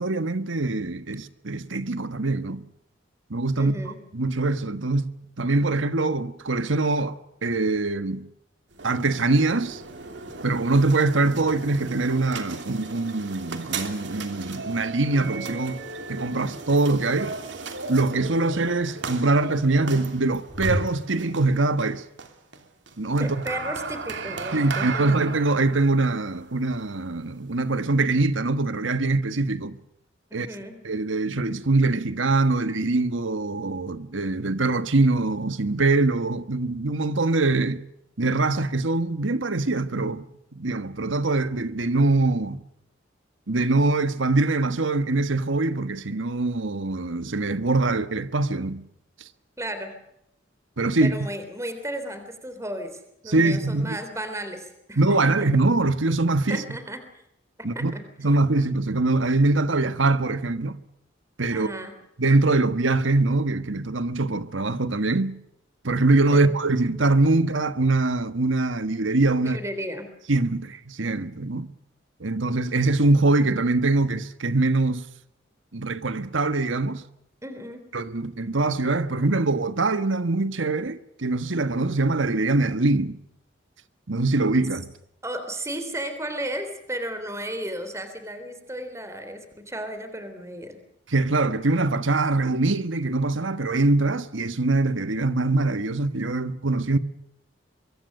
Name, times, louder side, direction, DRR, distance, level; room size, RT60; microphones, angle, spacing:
voice 1, 0.0-2.6 3.3-3.8 4.1-8.3 8.8-9.8 10.4-15.8 16.1-17.4 17.9-22.0 23.0-23.4 24.5-29.8 30.3-30.5 30.8-37.8 38.2-40.3 40.5-42.6 43.5-48.8 50.8-51.1 53.3-54.0 55.0-56.6 57.6-57.9 58.2-60.8 61.4-61.7 62.2-65.4 65.8-69.6 70.3-71.7 72.2-75.0 75.7-77.0 77.9-83.2 84.1-84.9 91.1-97.0, right 2 dB, 90° right, 1.4 m, -23 dB
voice 2, 3.6-4.0 23.2-25.0 30.3-30.8 49.6-50.0 51.0-55.3 56.5-57.0 57.7-58.0 61.5-61.9 66.3-66.5 69.4-70.0 77.4-77.9 85.2-90.8, right 1 dB, 15° right, 3.5 m, -34 dB
sound 1, 8.7-27.8, right 3 dB, 65° right, 3.1 m, -36 dB
24.0 x 23.0 x 6.6 m
head